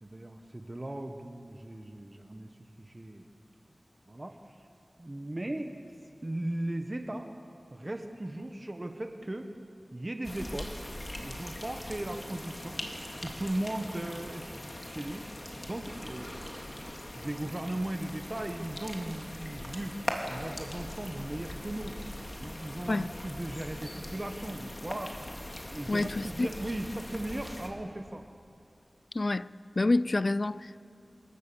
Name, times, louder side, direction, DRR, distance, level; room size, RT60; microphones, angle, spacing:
voice 1, 0.0-2.5 2.8-3.3 4.1-4.7 5.0-5.7 6.2-7.3 7.7-9.5 9.9-10.7 11.2-12.8 13.2-22.0 22.4-25.2 25.7-28.2, right 1 dB, 30° right, 1.2 m, -37 dB
sound 1, 10.2-27.7, left 1 dB, 35° left, 2.9 m, -41 dB
voice 2, 25.9-26.5 29.1-29.5 29.8-30.8, left 2 dB, 50° left, 0.5 m, -28 dB
27.0 x 21.5 x 7.0 m
wide cardioid pair, 60°, 0 cm